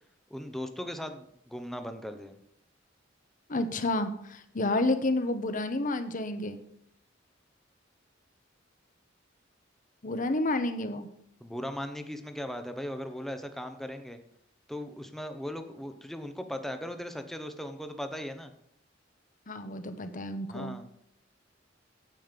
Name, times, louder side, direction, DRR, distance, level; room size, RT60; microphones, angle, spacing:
voice 1, 0.3-2.4 11.4-14.2 14.7-18.5 20.5-20.9, equal, ahead, 7 dB, 0.9 m, -38 dB
voice 2, 3.5-6.6 10.0-11.1 19.5-20.8, left 2 dB, 45° left, 9 dB, 1.0 m, -30 dB
9.5 x 8.6 x 5.2 m, 0.72 s
head